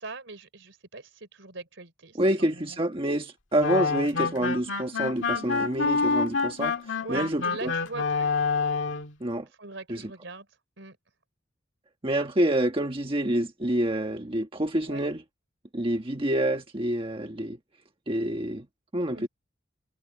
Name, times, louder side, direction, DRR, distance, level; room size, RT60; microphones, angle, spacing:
voice 1, 0.0-2.8 5.3-5.6 7.0-8.3 9.6-10.5 10.8-11.0 14.9-15.0 19.1-19.3, right 3 dB, 70° right, 4.4 m, -41 dB
voice 2, 2.2-7.7 9.2-9.5 9.9-10.1 12.0-15.2 15.7-17.6 18.1-18.6 18.9-19.3, right 1 dB, 30° right, 1.4 m, -27 dB
sound 1, 3.6-9.1, left 4 dB, 80° left, 1.9 m, -27 dB
head